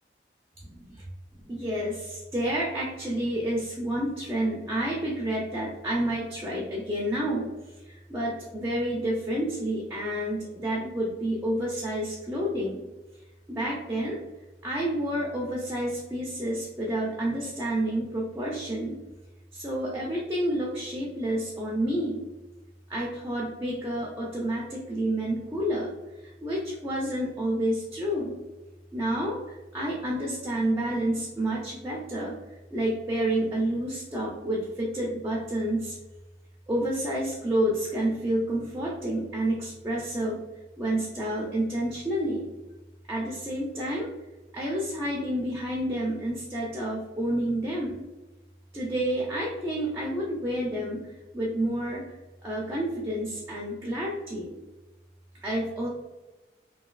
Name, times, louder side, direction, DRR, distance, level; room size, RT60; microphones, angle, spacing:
voice 1, 0.7-1.0 1.5-12.8 13.5-14.2 14.6-18.9 19.5-22.2 22.9-25.9 26.2-28.4 28.9-32.4 32.7-36.0 36.7-40.4 40.8-42.5 43.1-44.1 44.5-48.0 48.7-51.0 51.3-52.1 52.4-54.5 55.4-55.9, right 1 dB, 15° right, -3 dB, 0.4 m, -29 dB
3.0 x 2.6 x 2.3 m, 1.1 s
head